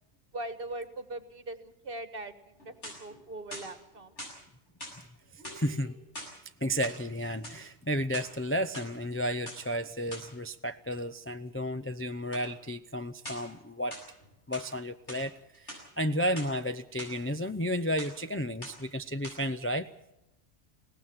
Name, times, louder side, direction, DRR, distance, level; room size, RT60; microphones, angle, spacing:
voice 1, 0.3-2.3 2.6-4.1, right 2 dB, 50° right, 9 dB, 1.8 m, -40 dB
sound 1, 2.6-3.2 3.5-4.4 4.8-5.0 5.4-6.4 6.7-7.6 8.0-8.9 9.5-9.6 10.1-10.3 12.3-12.5 13.2-13.5 13.9-14.7 15.1-15.3 15.5-16.5 17.0-17.1 17.5-17.7 18.0-18.3 18.6-18.9 19.2-19.4, equal, 75° left, 7.2 m, -44 dB
voice 2, 5.5-5.9 6.6-14.0 14.5-19.9, equal, 15° left, 9 dB, 0.5 m, -32 dB
22.0 x 18.0 x 7.3 m, 0.88 s
omnidirectional pair, 1.2 m